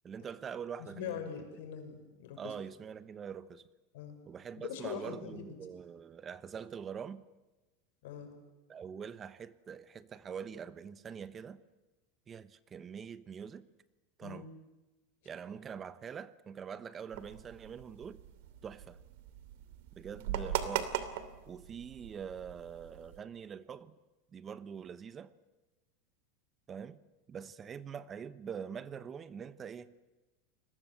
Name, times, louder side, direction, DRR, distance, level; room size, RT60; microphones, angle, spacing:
voice 1, 0.0-1.2 2.4-3.6 4.3-7.2 8.7-11.6 12.3-13.7 14.2-14.5 15.2-18.2 18.6-19.0 20.0-20.9 21.5-24.0 24.3-25.3 26.7-27.0 27.3-29.9, right 7 dB, 25° right, 15 dB, 1.1 m, -44 dB
voice 2, 0.9-2.5 3.9-4.1 4.6-5.5 8.0-8.3 14.2-14.4, left 8 dB, 75° left, 6 dB, 6.2 m, -42 dB
sound 1, 17.1-23.2, right 11 dB, 70° right, 2.8 m, -40 dB
29.5 x 21.5 x 7.8 m, 1.1 s
supercardioid pair, 120°, 0 cm